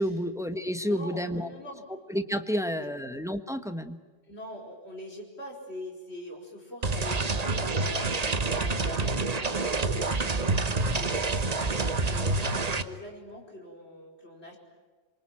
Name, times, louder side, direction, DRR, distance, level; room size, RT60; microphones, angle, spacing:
voice 1, 0.0-1.5 2.1-4.0, equal, 5° right, 9 dB, 1.2 m, -30 dB
voice 2, 0.8-1.8 2.5-2.6 4.2-11.7 12.1-14.6, left 1 dB, 65° left, 1 dB, 5.1 m, -43 dB
sound 1, 6.8-12.8, right 3 dB, 35° right, 1.2 m, -27 dB
26.5 x 23.5 x 8.8 m, 1.4 s
omnidirectional pair, 1.2 m